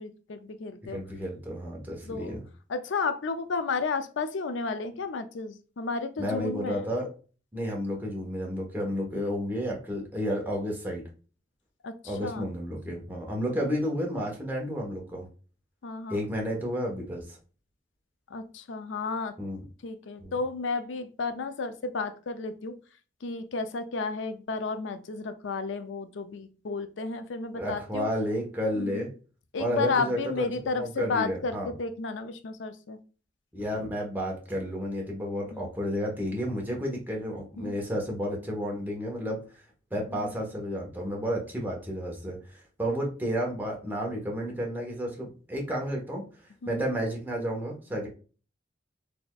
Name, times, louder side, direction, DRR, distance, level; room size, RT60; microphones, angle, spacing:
voice 1, 0.0-1.0 2.0-2.4 2.7-6.9 11.8-12.5 15.8-16.2 18.3-19.4 19.8-22.7 23.2-28.1 28.8-29.1 29.5-33.0 35.5-35.7 37.6-37.7 40.1-40.3 46.6-46.8, left 4 dB, 90° left, 9 dB, 0.5 m, -32 dB
voice 2, 0.9-2.4 6.2-7.1 7.5-11.0 12.0-15.3 16.1-17.4 19.4-19.6 20.2-20.3 27.5-29.1 29.6-30.5 30.8-31.7 33.5-39.6 39.9-48.1, equal, 10° right, -1 dB, 1.1 m, -31 dB
4.2 x 3.4 x 2.3 m, 0.37 s
head